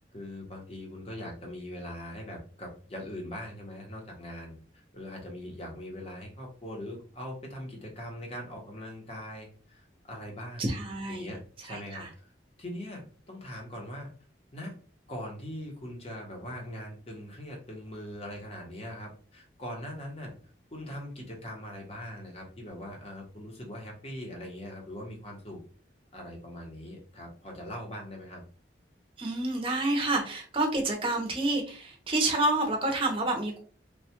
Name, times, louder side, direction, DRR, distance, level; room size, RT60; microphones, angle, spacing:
voice 1, 0.0-10.6 11.1-12.3 12.6-14.1 14.5-14.7 15.1-20.3 20.7-25.6 26.1-28.4, left 1 dB, 35° left, 0 dB, 0.8 m, -41 dB
voice 2, 10.6-11.3 11.6-12.1 29.2-33.6, right 2 dB, 30° right, 2 dB, 0.6 m, -29 dB
3.3 x 2.2 x 2.8 m, 0.42 s
head